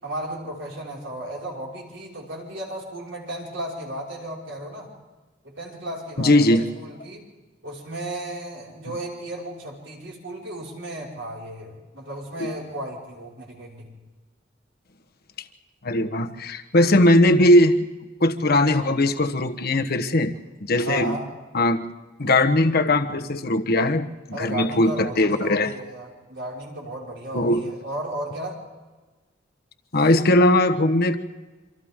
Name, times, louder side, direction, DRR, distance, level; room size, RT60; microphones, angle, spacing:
voice 1, 0.0-4.9 5.4-7.2 7.6-13.9 20.8-21.3 24.3-28.6, right 1 dB, 70° right, -2 dB, 5.4 m, -34 dB
voice 2, 6.2-6.6 12.4-12.5 15.8-17.9 18.2-20.3 20.6-21.2 21.5-21.8 22.2-25.7 27.3-27.6 29.9-31.2, left 1 dB, 55° left, 6 dB, 1.2 m, -19 dB
27.5 x 25.5 x 3.7 m, 1.3 s
head